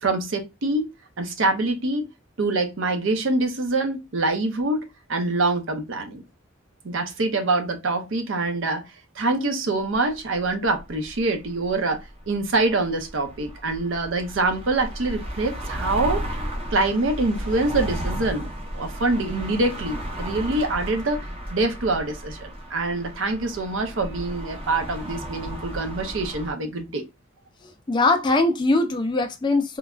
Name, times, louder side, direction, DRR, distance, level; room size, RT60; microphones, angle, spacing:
voice 1, 0.0-0.9 1.2-2.1 2.4-4.8 5.1-6.2 6.8-8.8 9.2-12.0 12.3-16.3 16.7-18.5 18.7-21.2 21.5-27.0, right 2 dB, 70° right, 0.6 m, -25 dB
sound 1, 9.9-26.5, equal, 30° right, 0.6 m, -34 dB
voice 2, 27.6-29.8, left 2 dB, 25° left, 0.4 m, -22 dB
3.1 x 2.2 x 2.3 m
head